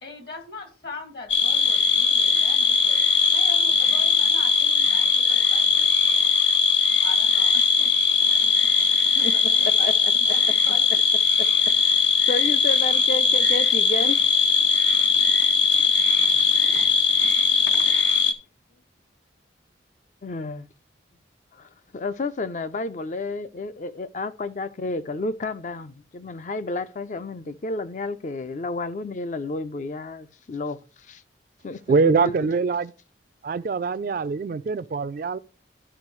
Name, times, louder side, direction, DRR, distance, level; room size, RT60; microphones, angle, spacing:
voice 1, 0.0-6.3 7.0-7.9 8.5-11.0, left 3 dB, 55° left, 1.8 m, -41 dB
sound 1, 1.3-18.3, left 6 dB, 75° left, 0.7 m, -20 dB
voice 2, 9.7-10.3 11.8-14.2 16.5-16.8 17.1-17.3 20.2-20.7 21.5-31.2 31.6-32.5, left 3 dB, 40° left, 0.4 m, -31 dB
voice 3, 31.9-32.9 33.4-35.4, right 4 dB, 50° right, 0.3 m, -23 dB
12.0 x 5.2 x 3.1 m
head